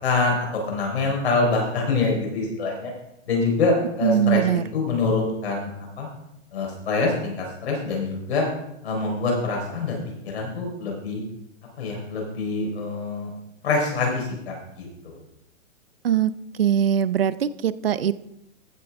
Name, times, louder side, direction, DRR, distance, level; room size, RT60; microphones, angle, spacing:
voice 1, 0.0-2.9 3.3-5.7 6.0-6.1 6.5-8.5 8.8-11.2 11.8-13.3 13.6-15.2, left 3 dB, 50° left, 0 dB, 4.2 m, -25 dB
voice 2, 4.0-4.6 16.0-16.3 16.6-18.1, right 9 dB, 50° right, 16 dB, 0.4 m, -21 dB
15.0 x 6.7 x 3.5 m, 0.80 s
hypercardioid pair, 170°, 40 cm